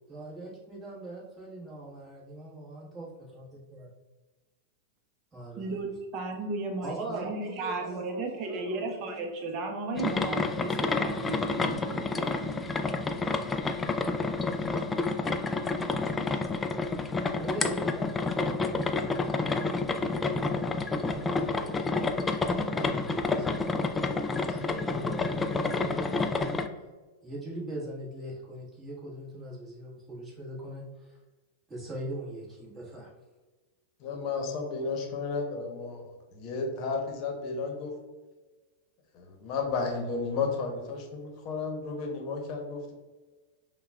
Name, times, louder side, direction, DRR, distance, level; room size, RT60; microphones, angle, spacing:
voice 1, 0.1-3.4 3.7-3.9 5.3-6.0 6.8-9.2 12.9-13.3 14.4-14.8 16.3-16.4 17.4-26.6 27.2-31.2 31.7-33.1, right 1 dB, 15° right, -5 dB, 1.5 m, -42 dB
voice 2, 5.6-12.7, right 3 dB, 40° right, 2 dB, 0.7 m, -35 dB
coffee hold the sugar, 10.0-26.7, left 3 dB, 15° left, 0.3 m, -29 dB
voice 3, 34.0-37.9 39.1-42.9, left 4 dB, 45° left, 2 dB, 0.9 m, -33 dB
5.7 x 2.3 x 2.4 m, 1.2 s
hypercardioid pair, 110°, 0 cm